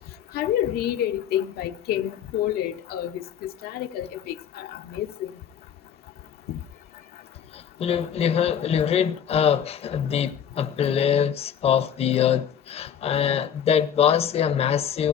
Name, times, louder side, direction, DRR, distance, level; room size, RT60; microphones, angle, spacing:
voice 1, 0.3-5.3 6.5-6.6, left 11 dB, 75° left, 0.7 m, -28 dB
voice 2, 7.5-15.1, left 8 dB, 40° left, 0.7 m, -23 dB
24.5 x 17.0 x 2.5 m
cardioid pair, 135°, 16 cm